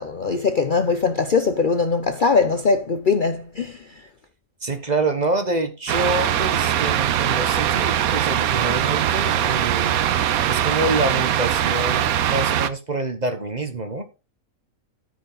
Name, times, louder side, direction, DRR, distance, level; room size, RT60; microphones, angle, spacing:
voice 1, 0.0-3.8, left 4 dB, 45° left, 0.7 m, -21 dB
voice 2, 4.6-14.0, right 2 dB, 30° right, 1.2 m, -26 dB
sound 1, 5.9-12.7, right 10 dB, 80° right, 1.2 m, -21 dB
13.5 x 5.2 x 3.9 m
omnidirectional pair, 1.5 m